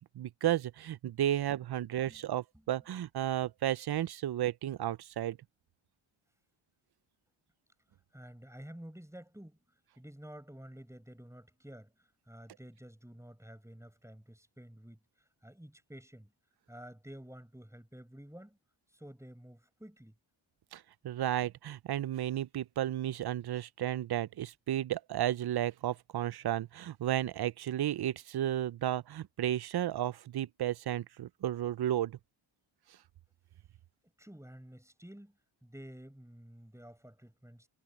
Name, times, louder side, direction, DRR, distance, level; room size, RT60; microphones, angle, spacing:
voice 1, 0.0-5.4 20.7-32.2, right 12 dB, 55° right, 0.5 m, -33 dB
voice 2, 8.1-9.6 10.0-16.3 16.7-18.6 18.9-20.2 34.2-37.7, equal, 5° right, 5.4 m, -51 dB
wide cardioid pair, 100°, 48 cm